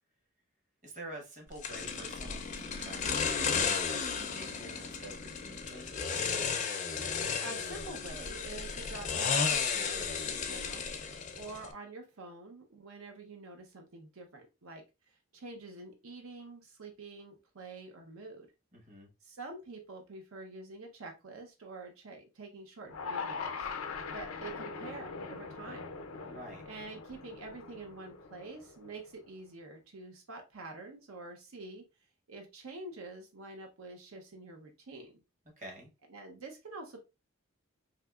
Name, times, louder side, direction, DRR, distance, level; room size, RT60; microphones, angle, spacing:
voice 1, 0.8-6.2 18.7-19.1 26.3-26.6 35.6-35.9, right 1 dB, 35° right, 1 dB, 1.0 m, -48 dB
sound 1, 1.6-11.7, left 6 dB, 35° left, 0.4 m, -34 dB
voice 2, 6.9-10.8 11.3-18.5 19.2-23.7 24.1-25.9 26.7-31.9 32.3-35.1 36.1-37.0, right 3 dB, 85° right, 4 dB, 0.6 m, -47 dB
sound 2, 22.9-29.1, left 5 dB, 85° left, 0.5 m, -41 dB
3.6 x 2.7 x 2.2 m, 0.26 s
head